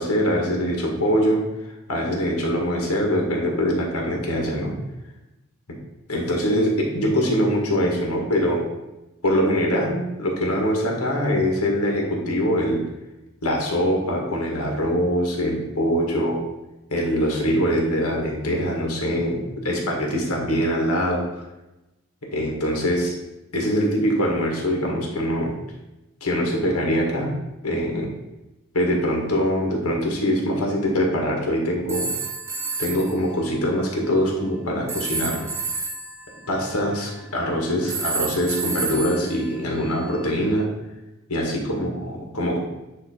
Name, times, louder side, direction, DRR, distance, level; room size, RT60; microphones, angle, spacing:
voice 1, 0.0-1.5 1.9-4.7 6.1-8.6 9.2-12.8 13.4-16.3 16.9-21.4 22.3-23.1 23.5-25.5 26.2-27.3 27.6-28.1 28.7-32.1 32.8-35.5 36.5-40.7 41.3-42.6, equal, 80° left, -1 dB, 1.7 m, -23 dB
sound 1, 31.9-33.2 34.9-37.4 37.9-40.2, right 3 dB, 10° right, 0.5 m, -30 dB
9.0 x 3.1 x 4.4 m, 0.99 s
head